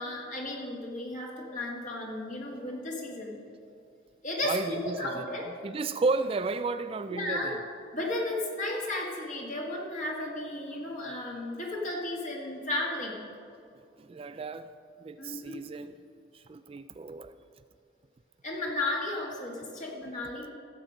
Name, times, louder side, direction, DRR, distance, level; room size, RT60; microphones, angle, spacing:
voice 1, 0.0-3.3 4.2-5.5 7.1-7.6 7.9-13.3 15.2-15.6 18.4-20.5, left 1 dB, 40° left, -2 dB, 1.7 m, -34 dB
voice 2, 4.4-7.6 14.0-14.7 15.0-16.0 16.3-17.3, right 3 dB, 30° right, 11 dB, 0.3 m, -33 dB
16.0 x 7.6 x 5.2 m, 2.4 s
head